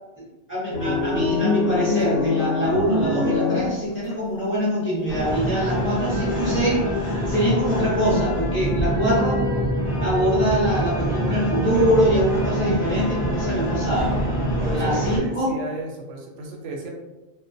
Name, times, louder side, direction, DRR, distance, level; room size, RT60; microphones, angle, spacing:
voice 1, 0.2-6.9 7.3-9.4 10.0-14.2 14.7-15.6, equal, 15° left, -8 dB, 0.6 m, -24 dB
sound 1, 0.7-4.1, left 4 dB, 90° left, 0.9 m, -23 dB
sound 2, 5.1-15.2, equal, 50° left, 0.8 m, -26 dB
sound 3, 8.6-14.5, right 3 dB, 65° right, 0.4 m, -29 dB
voice 2, 14.6-16.9, right 2 dB, 85° right, 0 dB, 0.9 m, -34 dB
2.3 x 2.1 x 2.5 m, 1.1 s
omnidirectional pair, 1.2 m